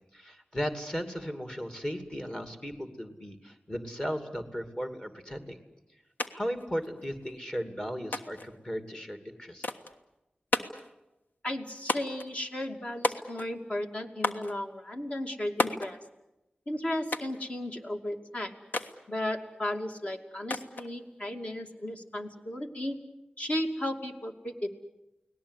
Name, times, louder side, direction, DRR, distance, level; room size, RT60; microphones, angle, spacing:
voice 1, 0.1-5.6 6.3-9.7, equal, 25° left, 7 dB, 2.7 m, -36 dB
sound 1, 6.2-6.3 6.6-7.3 8.1-8.5 9.6-10.0 10.5-10.9 11.9-12.3 13.0-13.6 14.2-14.5 15.6-15.9 17.1-17.4 18.7-19.0 20.5-20.9, left 2 dB, 80° left, 1.4 m, -31 dB
voice 2, 11.4-16.0 16.7-18.5 19.1-23.0 23.4-24.7, left 1 dB, 40° left, 4 dB, 2.7 m, -34 dB
29.5 x 19.0 x 8.3 m, 0.95 s
wide cardioid pair, 60°, 3 cm